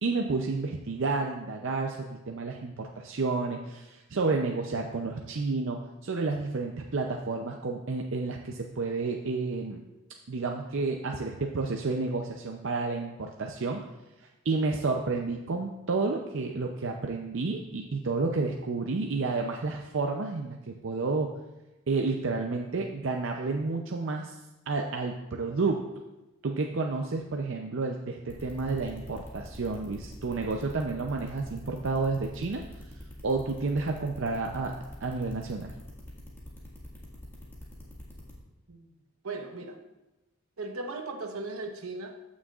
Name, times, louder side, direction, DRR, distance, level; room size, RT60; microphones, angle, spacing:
voice 1, 0.0-9.8 10.3-13.9 14.4-21.3 21.9-24.4 24.7-25.8 26.4-32.6 33.2-34.7 35.0-35.7, right 3 dB, 60° right, 2 dB, 0.5 m, -30 dB
sound 1, 28.3-38.3, equal, 10° left, 1.7 m, -45 dB
voice 2, 39.2-39.8 40.6-42.2, right 3 dB, 80° right, 4 dB, 1.0 m, -37 dB
14.5 x 6.3 x 2.4 m, 1.0 s
head